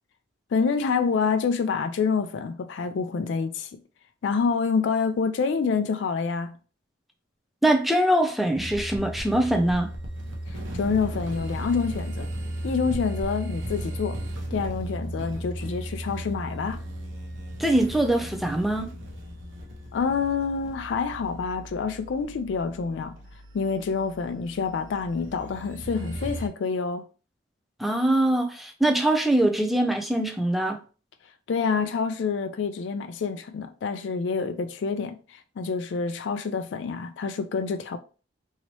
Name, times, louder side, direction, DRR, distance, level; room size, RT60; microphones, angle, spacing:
voice 1, 0.5-3.7 4.2-6.6 10.5-12.3 12.6-14.2 14.5-16.8 19.9-23.2 23.5-27.1 31.5-38.0, left 5 dB, 70° left, 0.3 m, -27 dB
voice 2, 7.6-9.9 17.6-18.9 27.8-30.8, right 1 dB, ahead, 0.4 m, -23 dB
sound 1, 8.6-26.5, right 1 dB, 85° right, 0.7 m, -36 dB
3.0 x 2.8 x 2.9 m
head